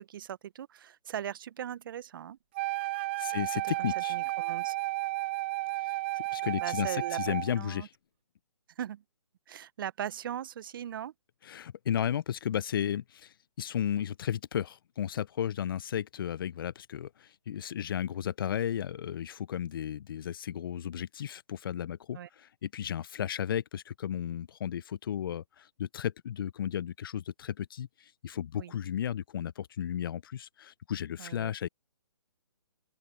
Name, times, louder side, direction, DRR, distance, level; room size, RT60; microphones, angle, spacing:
voice 1, 0.0-2.4 3.8-4.7 6.6-7.9 8.8-9.0 9.5-11.1 22.1-22.3 28.6-28.7 31.2-31.5, right 10 dB, 40° right, 0.9 m, -39 dB
Wind instrument woodwind instrument, 2.5-7.6, right 20 dB, 20° right, 0.5 m, -33 dB
voice 2, 3.2-4.1 5.8-7.9 11.4-31.7, left 9 dB, 45° left, 0.6 m, -34 dB
open air
figure-of-eight pair, 145°, 16 cm